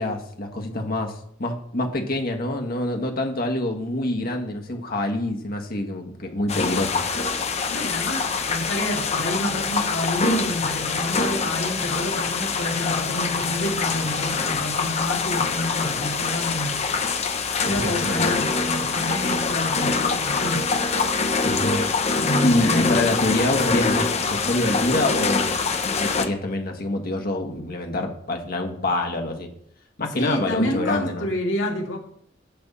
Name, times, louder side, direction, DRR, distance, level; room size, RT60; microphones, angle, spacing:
voice 1, 0.0-7.1 17.7-18.3 21.4-21.8 22.4-25.5 25.8-29.5 30.0-31.3, left 1 dB, 50° left, 1.5 m, -26 dB
sound 1, 6.5-26.3, left 4 dB, 35° left, 0.7 m, -24 dB
voice 2, 7.7-16.8 17.6-20.7 22.1-23.0 30.2-32.0, left 1 dB, 85° left, 2.1 m, -28 dB
10.5 x 3.5 x 7.1 m
head